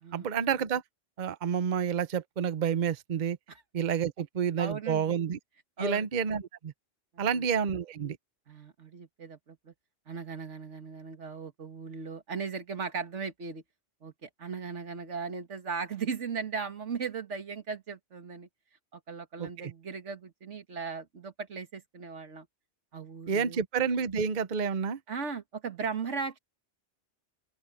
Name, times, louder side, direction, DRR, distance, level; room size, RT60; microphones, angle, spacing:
voice 1, 0.1-0.8 1.2-3.4 3.7-5.4 5.8-6.7 7.2-8.2 19.4-19.7 23.3-25.0, right 7 dB, 45° right, 0.8 m, -29 dB
voice 2, 4.6-5.2 5.8-6.1 7.1-7.5 8.5-9.7 10.1-13.6 14.0-18.5 18.9-22.5 22.9-23.6 25.1-26.4, right 5 dB, 90° right, 2.0 m, -37 dB
open air
omnidirectional pair, 1.2 m